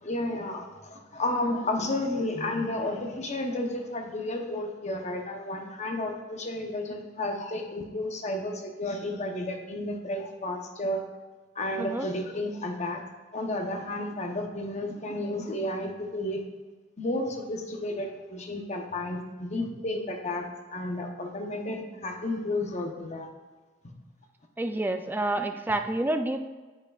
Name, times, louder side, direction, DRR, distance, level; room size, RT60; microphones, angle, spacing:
voice 1, 0.0-11.0 11.5-13.0 13.3-16.4 17.0-23.3, left 1 dB, 40° left, 3 dB, 0.9 m, -32 dB
voice 2, 24.6-26.5, right 1 dB, 10° right, 6 dB, 0.4 m, -28 dB
8.9 x 8.2 x 2.4 m, 1.3 s
head